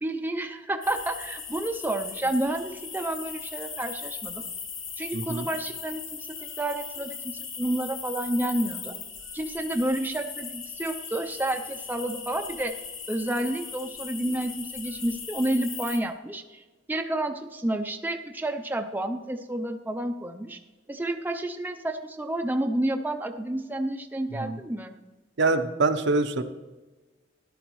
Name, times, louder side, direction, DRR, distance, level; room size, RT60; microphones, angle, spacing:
voice 1, 0.0-4.4 5.0-6.0 6.6-8.9 9.3-12.7 13.1-20.6 20.9-24.9, right 1 dB, 10° right, 5 dB, 0.5 m, -30 dB
sound 1, 0.8-16.0, left 6 dB, 85° left, 2.0 m, -38 dB
voice 2, 5.1-5.5 24.4-24.6 25.4-26.4, right 3 dB, 65° right, 8 dB, 0.7 m, -24 dB
13.5 x 11.0 x 3.1 m, 1.2 s
head